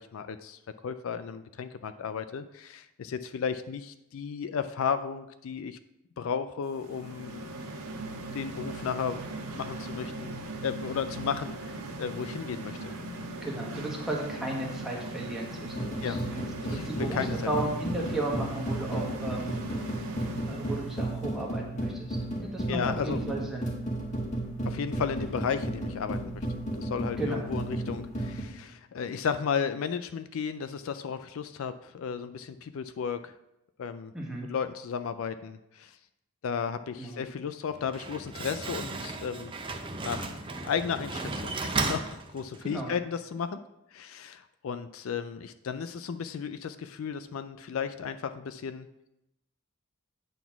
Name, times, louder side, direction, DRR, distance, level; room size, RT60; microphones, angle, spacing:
voice 1, 0.0-5.8 6.2-7.4 8.3-10.3 10.6-12.9 16.0-16.2 16.6-16.8 17.1-17.3 22.7-23.2 24.7-26.5 26.7-33.3 33.8-34.1 34.5-36.0 36.4-39.5 40.0-40.4 40.6-43.6 43.9-48.9, left 6 dB, 65° left, 11 dB, 0.3 m, -34 dB
sound 1, 6.7-21.2, right 2 dB, 90° right, 1.2 m, -39 dB
voice 2, 13.4-20.1 20.4-23.7 27.2-27.5 34.1-34.5 37.0-37.2 42.6-42.9, right 1 dB, ahead, -3 dB, 1.4 m, -35 dB
sound 2, 15.7-28.4, right 1 dB, 30° left, 1.6 m, -34 dB
Slam, 37.7-42.8, right 3 dB, 20° right, 0.5 m, -35 dB
9.1 x 4.0 x 5.9 m, 0.87 s
head